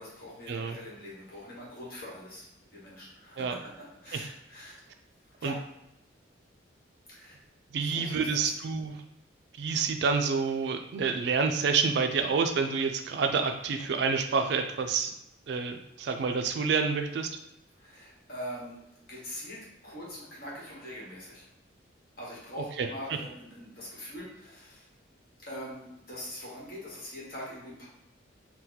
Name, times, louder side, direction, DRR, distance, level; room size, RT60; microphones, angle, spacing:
voice 1, 0.0-4.8 5.3-5.6 7.1-7.4 7.8-8.5 17.8-18.8 19.1-21.5 22.2-24.9 25.5-27.9, equal, 50° left, -6 dB, 1.2 m, -43 dB
voice 2, 7.7-8.9 9.6-15.1 15.5-17.3, right 5 dB, 60° right, 7 dB, 0.3 m, -28 dB
2.8 x 2.2 x 3.9 m, 0.85 s
head